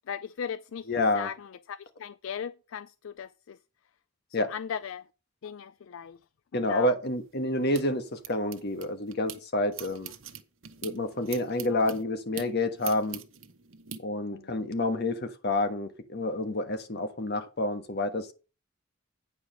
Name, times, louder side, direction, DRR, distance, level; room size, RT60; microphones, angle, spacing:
voice 1, 0.1-0.9 1.1-3.6 4.4-5.0 5.4-6.2 6.5-6.9 11.7-11.9 14.3-14.5, left 7 dB, 70° left, 0.4 m, -38 dB
voice 2, 0.9-1.3 4.3-4.5 6.5-10.1 10.8-13.2 14.0-18.3, left 1 dB, 55° left, 1.3 m, -29 dB
sound 1, 7.0-9.4 9.7-14.0, right 9 dB, 70° right, 1.0 m, -44 dB
9.5 x 4.9 x 6.3 m
head